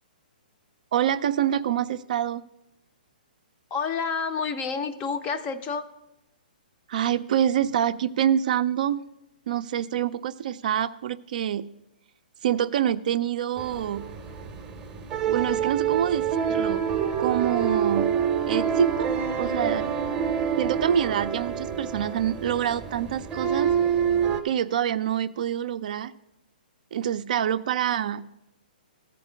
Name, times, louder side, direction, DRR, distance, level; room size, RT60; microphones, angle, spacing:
voice 1, 0.9-2.4 6.9-9.0 9.5-11.7 12.4-14.1 15.3-16.8 17.2-18.1 18.5-19.1 19.4-19.9 20.6-23.7 24.4-26.1 26.9-28.3, right 10 dB, 55° right, 12 dB, 0.4 m, -26 dB
voice 2, 3.7-5.9, left 5 dB, 25° left, 10 dB, 0.5 m, -29 dB
sound 1, 13.6-24.4, right 8 dB, 15° right, 0.7 m, -27 dB
13.5 x 4.5 x 6.1 m, 0.90 s
hypercardioid pair, 145°, 5 cm